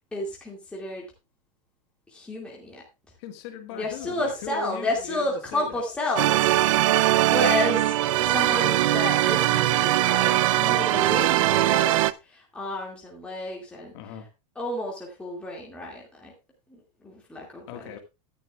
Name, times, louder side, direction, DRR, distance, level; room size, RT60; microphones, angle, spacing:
voice 1, 0.1-1.0 2.1-2.8 3.7-13.9 14.6-16.3 16.7-17.9, left 1 dB, 5° left, 2.3 m, -31 dB
voice 2, 3.2-5.8 10.9-11.2 13.9-14.3 17.7-18.0, left 7 dB, 45° left, 1.8 m, -38 dB
sound 1, 6.2-12.1, right 15 dB, 55° right, 0.5 m, -21 dB
12.5 x 11.0 x 2.4 m
supercardioid pair, 165°, 20 cm